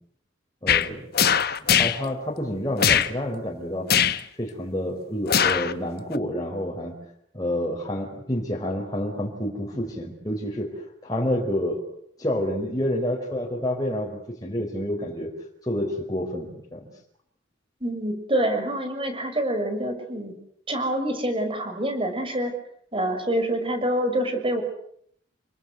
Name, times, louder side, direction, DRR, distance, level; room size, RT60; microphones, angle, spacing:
voice 1, 0.6-1.0 1.7-3.9 4.4-6.9 7.3-10.7 11.0-11.8 12.2-15.3 15.6-16.9, left 1 dB, 20° left, -2 dB, 4.6 m, -28 dB
sound 1, 0.7-0.9 1.1-2.0 2.8-3.1 3.9-4.2 5.3-5.7 6.1-6.2, left 8 dB, 55° left, 1.3 m, -20 dB
voice 2, 17.8-20.3 20.7-22.5 22.9-24.6, right 1 dB, 30° right, 7 dB, 6.3 m, -26 dB
28.5 x 24.0 x 8.0 m, 0.68 s
head